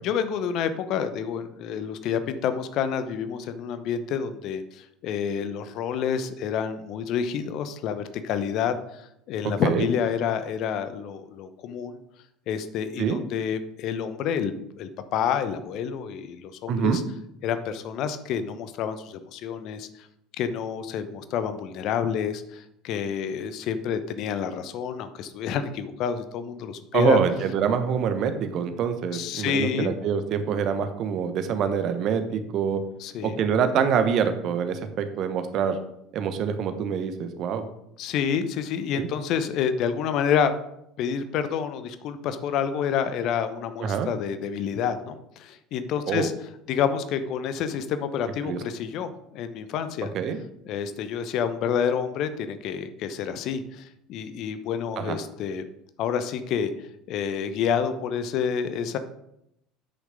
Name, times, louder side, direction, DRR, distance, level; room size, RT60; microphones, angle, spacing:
voice 1, 0.0-12.0 12.5-17.0 17.4-19.9 20.4-27.2 29.1-29.9 33.0-33.4 38.0-40.5 41.0-46.3 46.7-50.1 50.6-55.6 56.0-56.7 57.1-59.0, left 7 dB, 55° left, 11 dB, 0.9 m, -28 dB
voice 2, 16.7-17.0 26.9-32.8 33.2-35.8 36.1-37.6 39.0-39.1 43.8-44.1 46.1-46.3 48.4-48.6 50.1-50.4 55.0-55.2, right 7 dB, 50° right, 9 dB, 1.1 m, -25 dB
8.2 x 6.5 x 5.1 m, 0.80 s
figure-of-eight pair, 65°, 0 cm